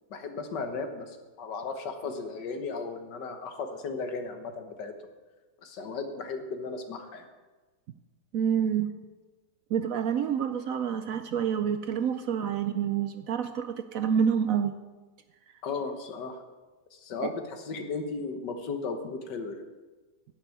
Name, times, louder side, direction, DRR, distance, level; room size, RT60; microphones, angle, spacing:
voice 1, 0.1-4.9 5.6-7.3 15.6-16.4 16.9-19.6, left 4 dB, 80° left, 6 dB, 1.8 m, -35 dB
voice 2, 8.3-8.9 9.7-14.7 17.2-17.3, right 8 dB, 70° right, 9 dB, 0.9 m, -28 dB
11.0 x 6.3 x 9.1 m, 1.3 s
omnidirectional pair, 1.8 m